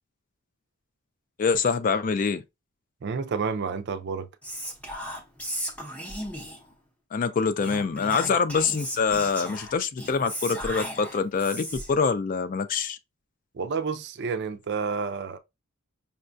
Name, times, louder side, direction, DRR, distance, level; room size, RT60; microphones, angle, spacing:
voice 1, 1.4-2.4 7.1-13.0, left 5 dB, 40° left, 0.3 m, -25 dB
voice 2, 3.0-4.3 13.5-15.4, right 5 dB, 50° right, 0.4 m, -30 dB
Whispering, 4.4-6.7 7.6-12.0, equal, 5° left, 0.6 m, -36 dB
5.4 x 2.2 x 2.5 m
head